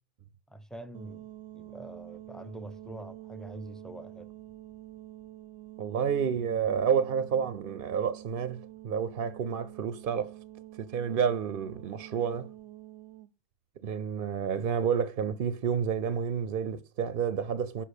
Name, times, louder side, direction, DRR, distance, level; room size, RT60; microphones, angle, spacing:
voice 1, 0.5-1.3 1.5-4.3, right 1 dB, ahead, 0.7 m, -44 dB
sound 1, 0.9-13.3, right 15 dB, 85° right, 0.9 m, -47 dB
voice 2, 5.8-10.3 10.8-12.5 13.8-17.8, right 7 dB, 60° right, 0.8 m, -30 dB
10.0 x 5.7 x 6.5 m
omnidirectional pair, 1.1 m